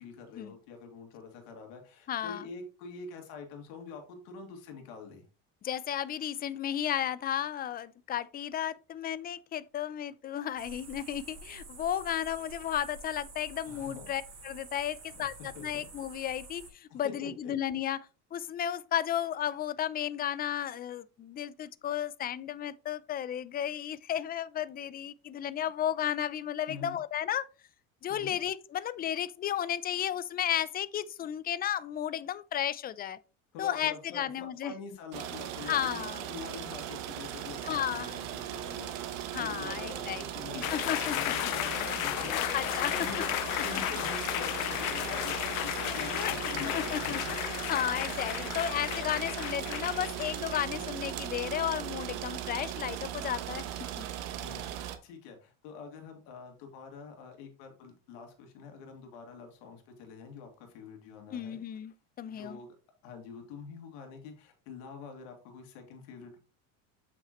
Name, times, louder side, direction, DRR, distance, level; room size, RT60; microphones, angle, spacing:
voice 1, 0.0-5.2 13.7-14.1 15.1-15.2 15.6-15.9 17.0-17.5 26.7-27.0 28.1-28.4 33.5-34.3 34.6-36.0 36.3-42.4 42.9-47.4 50.6-50.9 54.4-54.6 55.0-61.6 62.3-62.8 63.0-66.4, left 5 dB, 75° left, 2.4 m, -46 dB
voice 2, 2.1-2.4 5.6-27.5 28.0-33.2 33.6-34.7 35.7-36.2 37.6-38.1 39.3-40.2 40.5-41.2 42.2-43.2 43.7-43.8 45.9-53.6 54.0-54.1 61.3-62.6, left 10 dB, 25° left, 0.4 m, -34 dB
sound 1, 10.6-16.7, right 3 dB, 40° right, 4.3 m, -49 dB
sound 2, 35.1-55.0, right 11 dB, 80° right, 1.1 m, -38 dB
sound 3, 40.6-50.9, left 18 dB, 90° left, 0.5 m, -34 dB
7.6 x 5.9 x 3.0 m
supercardioid pair, 110°, 40 cm